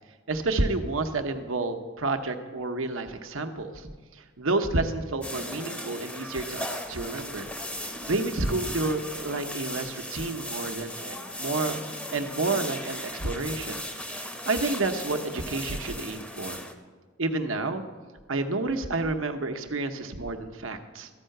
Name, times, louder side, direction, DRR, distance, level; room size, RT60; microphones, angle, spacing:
voice 1, 0.3-3.9 4.4-7.5 7.8-11.8 12.1-13.8 14.1-16.6 17.2-17.8 18.3-21.1, right 2 dB, 70° right, 7 dB, 0.9 m, -30 dB
sound 1, 5.2-16.7, left 1 dB, 5° left, 0.8 m, -37 dB
13.5 x 5.6 x 7.7 m, 1.4 s
head